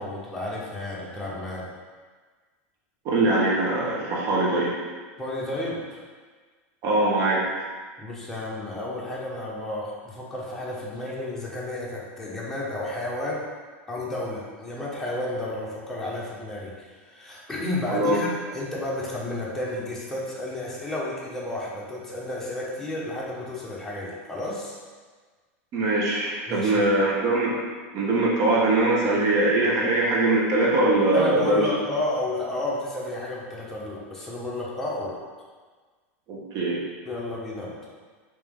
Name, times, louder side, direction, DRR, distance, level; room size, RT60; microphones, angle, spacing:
voice 1, 0.0-1.7 5.2-6.0 8.0-13.5 13.9-16.7 17.0-24.8 26.5-26.9 31.1-35.1 37.1-37.7, left 1 dB, 5° left, -6 dB, 1.0 m, -32 dB
voice 2, 3.0-4.7 6.8-7.4 17.9-18.1 25.7-31.7 36.3-36.8, right 2 dB, 50° right, -4 dB, 1.1 m, -22 dB
3.3 x 2.9 x 3.6 m, 1.5 s
hypercardioid pair, 115°, 8 cm